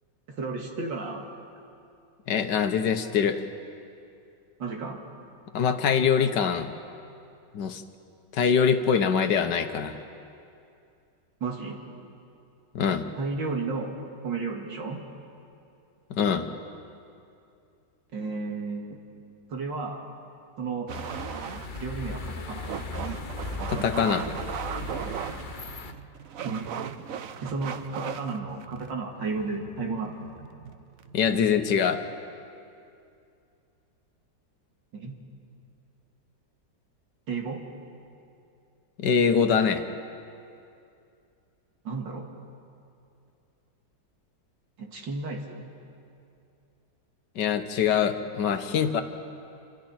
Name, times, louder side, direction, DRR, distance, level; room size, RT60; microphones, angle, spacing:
voice 1, 0.3-1.3 4.6-5.0 11.4-11.8 13.2-14.0 14.2-15.0 18.1-19.0 19.5-20.0 20.6-20.9 21.8-22.8 26.4-26.7 27.4-30.1 34.9-35.1 37.3-37.6 41.8-42.3 44.8-45.7, right 4 dB, 75° right, 0 dB, 2.9 m, -33 dB
voice 2, 2.3-3.4 5.5-6.7 7.5-7.8 8.3-9.9 12.7-13.1 16.1-16.5 23.7-24.3 31.1-32.0 39.0-39.8 47.4-49.0, left 7 dB, 70° left, 8 dB, 1.6 m, -24 dB
sound 1, 20.9-25.9, left 5 dB, 45° left, 0.7 m, -38 dB
sound 2, 20.9-31.9, right 8 dB, 60° right, 1.0 m, -38 dB
28.5 x 26.0 x 4.3 m, 2.6 s
omnidirectional pair, 2.0 m